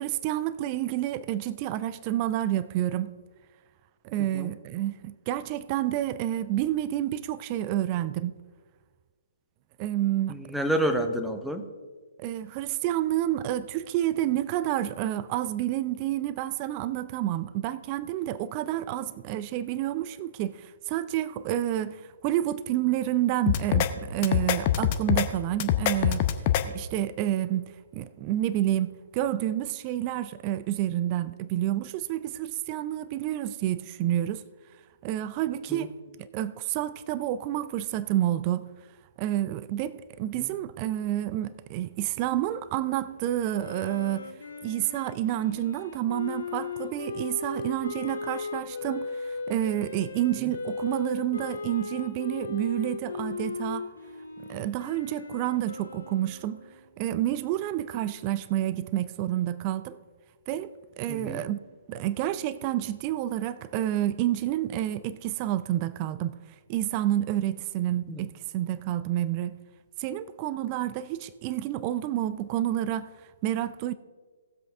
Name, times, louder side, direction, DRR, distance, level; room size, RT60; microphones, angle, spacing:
voice 1, 0.0-3.2 4.0-8.4 9.8-10.4 12.2-26.3 26.6-34.4 35.0-36.0 36.3-38.7 39.2-44.3 44.6-53.9 54.5-56.6 57.0-60.0 60.5-61.6 61.9-66.4 66.7-69.6 70.0-73.1 73.4-73.9, right 13 dB, 30° right, 0.4 m, -29 dB
voice 2, 10.3-11.7 35.7-35.9 40.3-40.5 61.1-61.4 68.1-68.2, right 1 dB, ahead, 0.8 m, -29 dB
sound 1, 23.5-23.9 24.2-25.3 25.6-26.6, left 11 dB, 30° left, 0.6 m, -23 dB
Wind instrument woodwind instrument, 43.5-56.9, left 4 dB, 65° left, 2.6 m, -37 dB
17.0 x 7.7 x 3.5 m
figure-of-eight pair, 125°, 0 cm